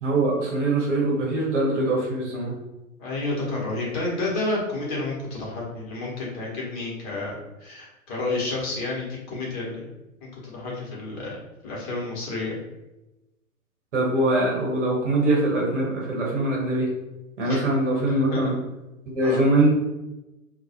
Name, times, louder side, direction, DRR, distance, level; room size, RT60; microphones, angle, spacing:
voice 1, 0.0-2.5 13.9-16.9 17.4-18.5 19.1-19.7, right 2 dB, 55° right, -3 dB, 0.9 m, -23 dB
voice 2, 3.0-7.3 7.6-9.9 10.4-11.4 11.6-12.6 17.4-17.6 18.3-18.5 19.2-19.4, left 2 dB, 30° left, -4 dB, 0.8 m, -30 dB
2.2 x 2.1 x 2.7 m, 0.99 s
figure-of-eight pair, 110°, 42 cm